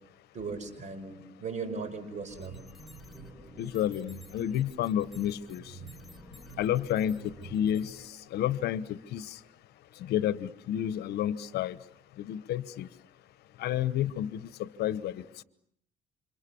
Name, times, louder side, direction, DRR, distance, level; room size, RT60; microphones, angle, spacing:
voice 1, 0.3-2.6, right 4 dB, 45° right, 9 dB, 5.4 m, -38 dB
sound 1, 2.3-8.1, right 3 dB, ahead, 3.2 m, -48 dB
voice 2, 3.6-5.6 6.6-8.0 8.3-9.4 10.1-11.8 12.2-12.9 13.6-15.4, left 11 dB, 75° left, 16 dB, 1.1 m, -30 dB
29.0 x 27.0 x 7.1 m, 0.69 s
cardioid pair, 110°, 17 cm